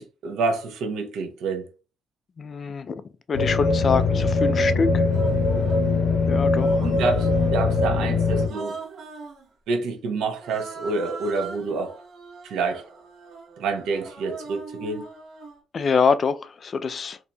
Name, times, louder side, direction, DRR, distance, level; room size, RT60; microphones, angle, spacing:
voice 1, 0.0-1.7 6.8-8.8 9.7-12.0 12.4-12.9 13.6-15.1, right 4 dB, 80° right, 0.8 m, -28 dB
voice 2, 2.4-3.0 3.3-5.0 6.3-6.9 15.7-17.2, left 5 dB, 45° left, 0.3 m, -25 dB
sound 1, 3.3-8.5, left 3 dB, 75° left, 0.6 m, -21 dB
Human voice, 3.9-4.0 5.0-5.9 6.5-7.6 8.3-9.4 10.3-15.6, right 4 dB, 65° right, 1.1 m, -41 dB
3.9 x 2.7 x 2.2 m
cardioid pair, 90°, 0 cm